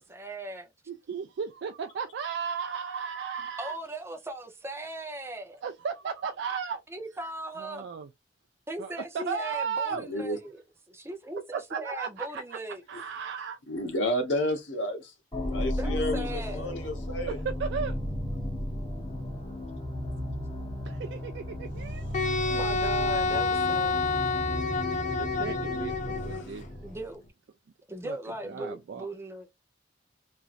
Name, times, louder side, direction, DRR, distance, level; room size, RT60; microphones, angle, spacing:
voice 1, 0.0-0.7 3.6-5.6 6.9-7.9 8.7-10.6 10.9-12.8 15.7-16.8 22.5-24.1 26.8-27.2 27.9-29.5, right 1 dB, 15° right, 0.6 m, -38 dB
voice 2, 0.9-3.8 5.6-6.8 7.6-8.1 8.8-10.1 11.5-12.6 12.9-13.6 17.4-18.0 20.8-22.3 25.2-26.7 28.0-28.2 28.4-29.1, right 6 dB, 65° right, 0.3 m, -35 dB
voice 3, 10.1-10.4 13.7-15.1 15.5-17.4 26.3-26.5, equal, 75° left, 0.9 m, -31 dB
sound 1, 15.3-27.2, left 1 dB, 25° left, 1.2 m, -34 dB
Wind instrument woodwind instrument, 22.1-26.4, left 3 dB, 40° left, 0.4 m, -28 dB
3.0 x 2.5 x 2.4 m
head